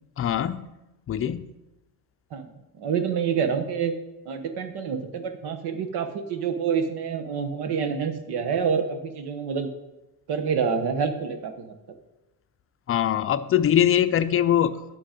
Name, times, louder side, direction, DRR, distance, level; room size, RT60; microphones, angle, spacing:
voice 1, 0.2-0.7 1.1-1.5 12.9-14.8, left 10 dB, 35° left, 12 dB, 0.5 m, -22 dB
voice 2, 2.8-3.9 4.2-9.7 10.3-11.8, right 6 dB, 80° right, 8 dB, 1.3 m, -27 dB
10.0 x 6.8 x 5.2 m, 0.97 s
cardioid pair, 140°, 39 cm